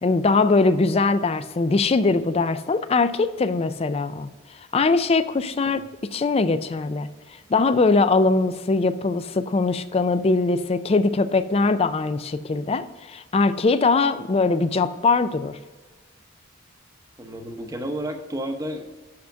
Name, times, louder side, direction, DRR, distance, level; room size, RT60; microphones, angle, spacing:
voice 1, 0.0-4.3 4.7-5.8 6.1-7.1 7.5-12.9 13.1-15.6, left 3 dB, 30° left, 13 dB, 0.4 m, -21 dB
voice 2, 17.2-19.1, right 1 dB, 15° right, 5 dB, 0.8 m, -32 dB
6.4 x 5.8 x 6.2 m, 1.3 s
head